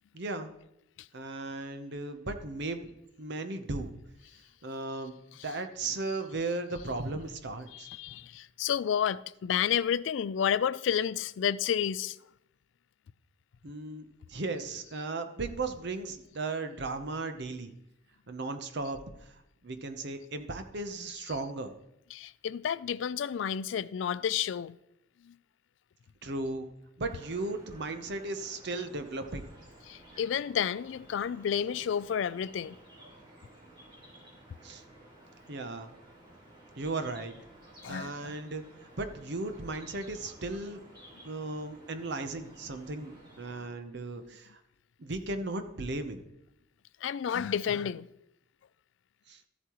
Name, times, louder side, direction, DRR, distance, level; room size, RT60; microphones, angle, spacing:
voice 1, 0.1-0.5 1.1-2.9 3.2-3.9 4.6-5.2 5.4-7.9 13.6-17.7 18.3-19.3 19.6-21.7 26.2-26.7 27.0-29.4 34.6-34.8 35.5-35.9 36.8-37.3 37.9-38.6 39.0-40.8 41.2-44.6 45.0-46.3 49.3-49.4, right 2 dB, 60° right, 0.8 m, -36 dB
voice 2, 7.7-12.2 22.1-24.7 25.3-25.4 29.9-32.8 37.8-38.3 47.0-48.1, left 8 dB, 70° left, 0.3 m, -31 dB
sound 1, 27.0-43.7, right 1 dB, 25° right, 3.1 m, -54 dB
13.5 x 8.2 x 3.1 m
head